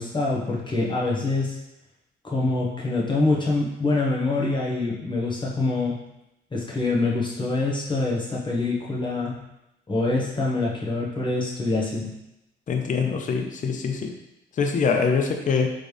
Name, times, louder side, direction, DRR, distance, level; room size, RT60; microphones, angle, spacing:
voice 1, 0.0-1.6 2.2-6.0 6.5-9.4 9.9-12.1, left 2 dB, 25° left, -4 dB, 1.1 m, -25 dB
voice 2, 12.7-14.1 14.6-15.7, left 5 dB, 40° left, 3 dB, 0.6 m, -24 dB
4.1 x 3.2 x 3.4 m, 0.89 s
cardioid pair, 90°, 20 cm